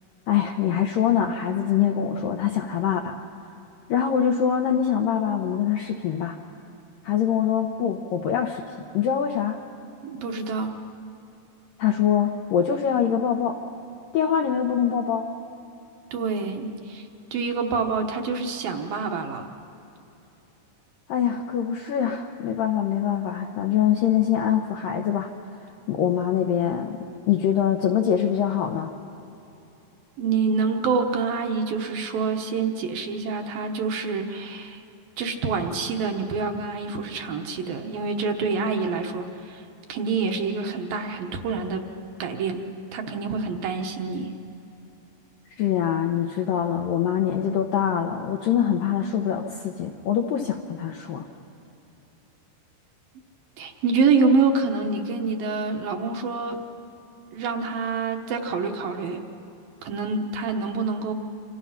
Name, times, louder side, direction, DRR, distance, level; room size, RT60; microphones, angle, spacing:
voice 1, 0.3-3.2 3.9-6.4 7.0-8.6 8.9-9.6 11.8-13.6 14.1-15.3 21.1-25.3 25.9-28.9 45.6-51.3, left 9 dB, 80° left, 3 dB, 2.0 m, -24 dB
voice 2, 10.0-10.7 16.1-19.5 30.2-34.8 35.2-39.6 39.9-41.8 42.2-44.3 53.6-56.6 57.3-59.2 59.8-61.1, right 4 dB, 65° right, 4 dB, 2.5 m, -26 dB
28.0 x 26.5 x 5.8 m, 2.9 s
omnidirectional pair, 5.2 m